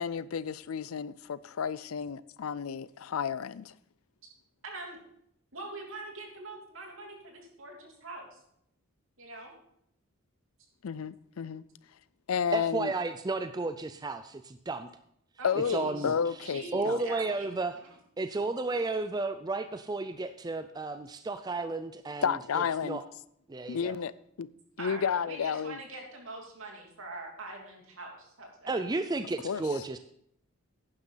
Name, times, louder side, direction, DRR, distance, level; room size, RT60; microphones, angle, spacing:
voice 1, 0.0-3.7 10.8-11.6 12.3-12.9 15.4-17.0 22.2-23.0 23.7-24.1 24.4-24.5 24.8-25.8 29.4-29.6, left 7 dB, 90° left, 0.5 m, -31 dB
voice 2, 4.6-5.0 5.5-8.4 9.2-9.5 15.4-16.1 16.4-17.5 17.7-17.9 24.8-28.7, right 2 dB, 70° right, 2.9 m, -43 dB
voice 3, 12.5-14.9 15.7-16.1 16.7-17.8 18.2-22.4 22.8-23.0 23.5-23.9 28.7-30.0, right 3 dB, 20° right, 0.4 m, -32 dB
11.5 x 9.8 x 4.0 m
head